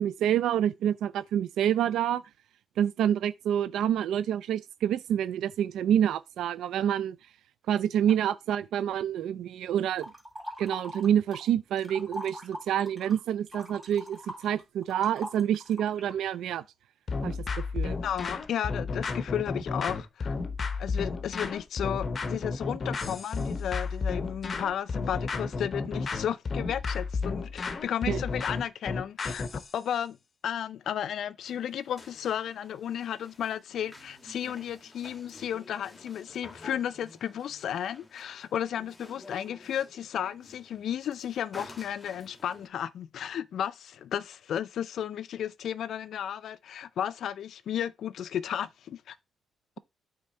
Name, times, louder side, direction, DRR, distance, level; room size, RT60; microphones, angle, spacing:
voice 1, 0.0-2.2 2.8-7.2 7.7-10.1 10.6-16.6 17.2-18.0 28.1-28.2, right 10 dB, 80° right, 0.4 m, -27 dB
sound 1, 10.0-11.5 11.8-16.2, equal, 10° right, 3.2 m, -42 dB
sound 2, 17.1-29.7, left 4 dB, 35° left, 0.9 m, -32 dB
voice 2, 17.8-20.4 20.8-30.2 30.4-49.2, left 9 dB, 65° left, 0.3 m, -33 dB
sound 3, 31.4-42.7, left 2 dB, 20° left, 1.4 m, -52 dB
8.6 x 3.6 x 4.3 m
cardioid pair, 120°, 0 cm